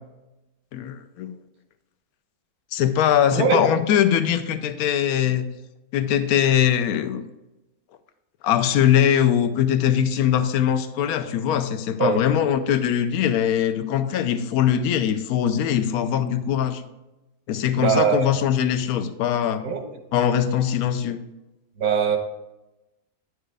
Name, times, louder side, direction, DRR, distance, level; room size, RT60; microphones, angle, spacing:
voice 1, 0.7-1.3 2.7-5.5 5.9-7.2 8.4-16.8 17.5-19.6 20.1-21.2, left 9 dB, 85° left, 10 dB, 1.1 m, -21 dB
voice 2, 3.3-3.7 12.0-12.2 17.8-18.3 19.6-20.0 21.8-22.2, right 6 dB, 85° right, 4 dB, 1.6 m, -21 dB
10.0 x 6.5 x 3.3 m, 0.98 s
omnidirectional pair, 1.5 m